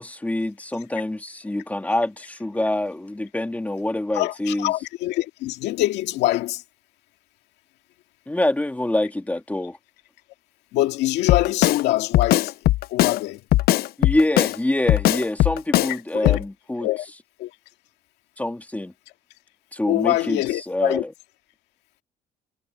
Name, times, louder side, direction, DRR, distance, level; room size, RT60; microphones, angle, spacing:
voice 1, 0.0-4.7 8.3-9.8 14.0-16.9 18.4-18.9 19.7-20.4 20.7-21.0, left 1 dB, 10° left, 2.6 m, -25 dB
voice 2, 4.1-6.6 10.7-12.5 12.9-13.5 15.9-16.4 16.8-17.1 17.4-17.6 19.9-21.0, left 16 dB, 90° left, 2.1 m, -24 dB
Drum kit, 11.3-11.8 12.1-13.2 13.5-14.6 14.9-15.9 16.3-16.4, left 15 dB, 65° left, 0.5 m, -19 dB
cardioid pair, 110°, 17 cm